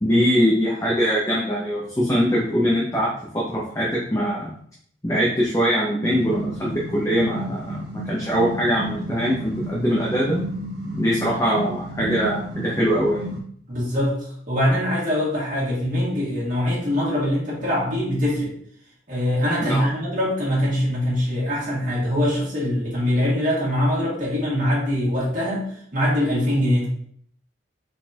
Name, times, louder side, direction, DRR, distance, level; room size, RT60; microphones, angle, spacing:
voice 1, 0.0-4.5 5.0-10.4 11.0-13.4 19.6-19.9, equal, 15° left, -4 dB, 0.8 m, -22 dB
sound 1, 6.0-13.4, equal, 65° right, 1.2 m, -33 dB
voice 2, 13.7-18.5 19.1-26.9, left 1 dB, 45° right, -6 dB, 2.0 m, -23 dB
4.3 x 4.2 x 2.9 m, 0.63 s
head